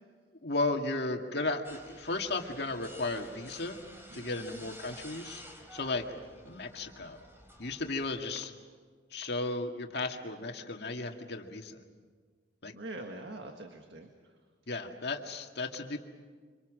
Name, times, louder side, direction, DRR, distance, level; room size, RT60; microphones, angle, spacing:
voice 1, 0.4-3.8 4.1-5.4 5.7-6.1 6.4-7.2 7.6-8.5 9.1-11.8 12.6-12.8 14.7-16.0, left 2 dB, 60° left, 3 dB, 2.0 m, -35 dB
sound 1, 1.6-8.2, equal, 15° right, 3.6 m, -52 dB
voice 2, 4.1-4.7 12.7-14.1, right 2 dB, 70° right, 4 dB, 1.8 m, -44 dB
26.0 x 26.0 x 6.4 m, 1.5 s
head